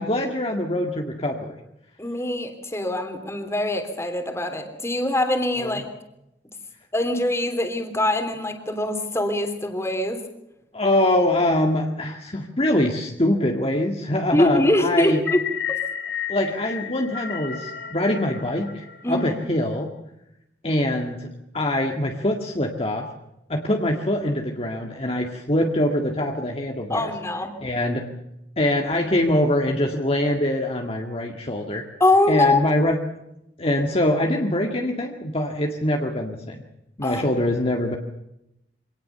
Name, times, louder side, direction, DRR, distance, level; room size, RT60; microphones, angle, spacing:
voice 1, 0.0-1.6 5.6-5.8 10.7-15.2 16.3-19.9 20.6-21.3 21.5-23.1 23.5-27.1 27.6-28.1 28.6-31.8 32.3-33.0 33.6-36.6 37.0-38.0, left 1 dB, 35° left, 2 dB, 2.0 m, -23 dB
voice 2, 2.0-5.8 6.9-10.2 14.3-15.4 15.7-15.8 19.0-19.3 26.9-27.5 32.0-32.6 37.0-37.2, left 1 dB, 15° left, 6 dB, 3.2 m, -23 dB
sound 1, 15.1-19.5, left 9 dB, 65° left, 1.9 m, -32 dB
25.0 x 18.5 x 6.9 m, 0.85 s
head